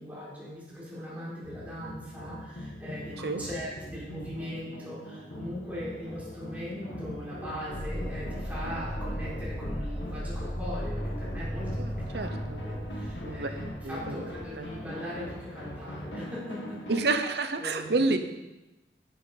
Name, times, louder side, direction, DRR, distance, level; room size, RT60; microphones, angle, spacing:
voice 1, 0.0-17.1 17.6-18.2, equal, 10° right, -8 dB, 3.7 m, -40 dB
sound 1, 1.4-17.1, equal, 85° left, 1.6 m, -41 dB
sound 2, 7.7-14.9, equal, 25° left, 1.2 m, -36 dB
voice 2, 11.8-12.6 13.2-13.5 13.8-14.3 14.6-14.7 16.9-18.2, right 3 dB, 65° right, 7 dB, 0.8 m, -29 dB
10.5 x 7.7 x 4.2 m, 1.0 s
head